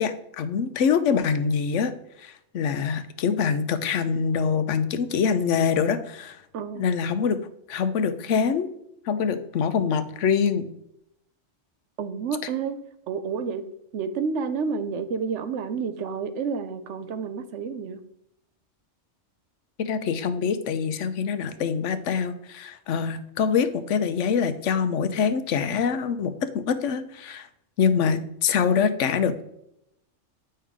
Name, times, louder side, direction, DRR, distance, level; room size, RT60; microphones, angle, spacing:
voice 1, 0.0-1.9 2.2-6.4 6.8-7.4 7.7-8.7 9.1-10.7 19.8-27.5 27.8-29.4, left 6 dB, 80° left, 11 dB, 1.0 m, -24 dB
voice 2, 12.0-12.8 13.1-13.7 13.9-18.0, right 5 dB, 75° right, 11 dB, 1.0 m, -30 dB
8.6 x 5.6 x 3.6 m, 0.78 s
omnidirectional pair, 1.3 m